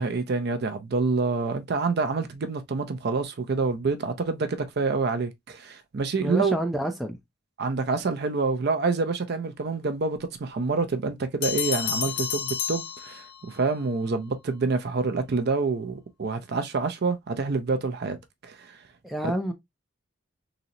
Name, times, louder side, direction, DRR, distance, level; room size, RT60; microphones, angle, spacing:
voice 1, 0.0-6.5 7.6-18.2 18.4-18.7 19.2-19.3, right 4 dB, 55° right, 0.5 m, -27 dB
voice 2, 6.2-7.2 19.0-19.5, equal, ahead, 0.4 m, -28 dB
Bell, 11.4-13.7, left 9 dB, 70° left, 0.5 m, -30 dB
3.8 x 2.0 x 2.7 m
head